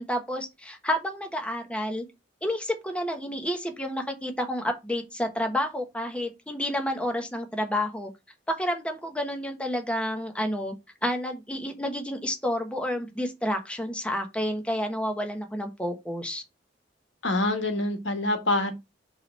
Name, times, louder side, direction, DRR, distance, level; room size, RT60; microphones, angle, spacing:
voice 1, 0.0-2.1 2.4-8.1 8.5-10.7 11.0-16.4, equal, 5° left, 1.1 m, -30 dB
voice 2, 17.2-18.7, left 2 dB, 90° left, 1.5 m, -25 dB
5.6 x 3.4 x 5.3 m
head